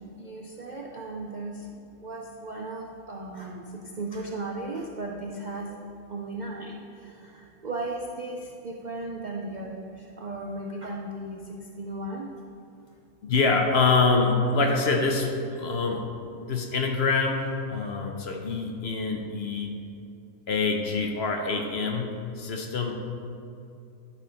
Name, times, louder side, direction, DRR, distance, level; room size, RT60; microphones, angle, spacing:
voice 1, 0.0-1.7 2.0-5.8 6.1-12.3, right 2 dB, 55° right, -1 dB, 0.5 m, -36 dB
voice 2, 13.2-16.1 16.4-19.7 20.5-23.0, left 4 dB, 55° left, 2 dB, 0.9 m, -25 dB
10.5 x 4.4 x 5.2 m, 2.6 s
omnidirectional pair, 1.4 m